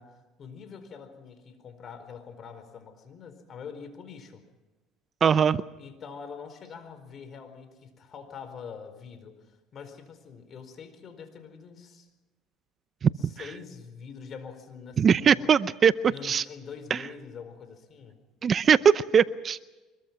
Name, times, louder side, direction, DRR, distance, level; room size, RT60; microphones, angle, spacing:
voice 1, 0.0-4.4 5.8-12.1 13.2-15.5 16.1-18.2, left 6 dB, 45° left, 10 dB, 4.5 m, -44 dB
voice 2, 5.2-5.6 13.0-13.1 15.0-16.4 16.9-17.0 18.4-19.7, right 7 dB, 35° right, 16 dB, 0.6 m, -21 dB
24.5 x 22.0 x 6.0 m, 1.1 s
supercardioid pair, 100°, 0 cm